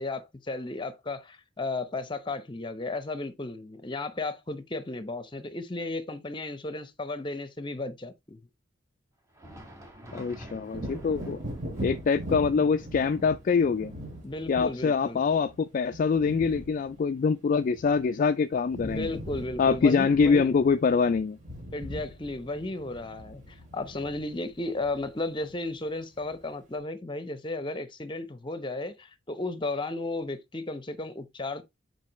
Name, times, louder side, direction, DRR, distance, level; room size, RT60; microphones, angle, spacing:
voice 1, 0.0-8.4 14.2-15.2 18.8-20.4 21.7-31.6, left 2 dB, 25° left, 0.8 m, -34 dB
Thunder, 9.2-18.6 19.0-19.1 19.8-20.0 21.0-21.1, equal, 15° right, 1.6 m, -52 dB
voice 2, 10.1-11.4 11.8-13.9 14.5-19.1 19.6-21.4, left 5 dB, 45° left, 0.3 m, -24 dB
Wind / Thunder, 10.7-18.3 18.5-25.8 26.2-26.3, right 1 dB, 40° right, 2.5 m, -41 dB
7.4 x 4.6 x 3.1 m
head